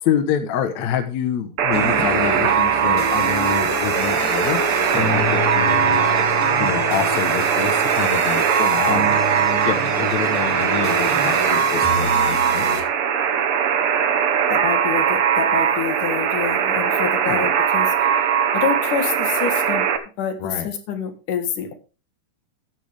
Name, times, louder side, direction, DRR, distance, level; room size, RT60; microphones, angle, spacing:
voice 1, 0.0-4.6 5.0-6.1 6.6-9.1 9.6-12.9 17.2-17.5 20.4-20.7, left 8 dB, 65° left, 7 dB, 2.4 m, -26 dB
Alarm, 1.6-20.0, right 8 dB, 60° right, 1.6 m, -20 dB
sound 1, 1.7-12.8, left 2 dB, 5° left, 1.4 m, -28 dB
voice 2, 14.5-19.9 20.2-21.7, left 7 dB, 85° left, 7 dB, 3.2 m, -27 dB
14.0 x 9.3 x 3.5 m, 0.33 s
omnidirectional pair, 3.6 m